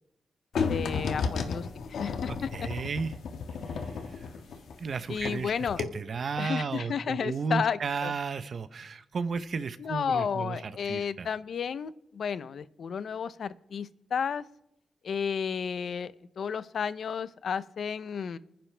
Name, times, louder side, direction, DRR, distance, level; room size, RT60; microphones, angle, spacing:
sound 1, 0.5-5.4 5.7-5.8, left 5 dB, 85° left, 1.5 m, -33 dB
voice 1, 0.7-2.5 5.1-5.8 6.4-8.1 9.8-14.4 15.0-18.4, left 7 dB, 55° left, 15 dB, 0.6 m, -32 dB
voice 2, 2.3-3.1 3.7-4.3 4.8-11.3, right 5 dB, 45° right, 13 dB, 0.7 m, -34 dB
30.0 x 10.5 x 3.3 m, 0.83 s
wide cardioid pair, 175°, 0 cm